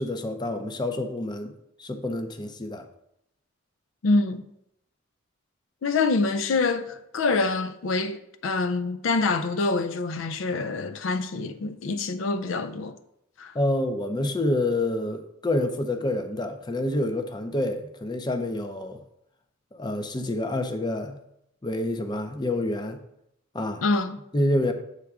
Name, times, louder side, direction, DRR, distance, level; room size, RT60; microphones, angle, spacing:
voice 1, 0.0-1.5 1.8-2.9 13.5-19.0 19.7-21.2 21.6-23.0 23.5-23.8 24.3-24.7, left 1 dB, 20° left, 0.5 m, -27 dB
voice 2, 4.0-4.5 5.8-13.0 13.4-13.5 23.8-24.2, left 3 dB, 70° left, 0.4 m, -26 dB
8.2 x 3.5 x 4.8 m
head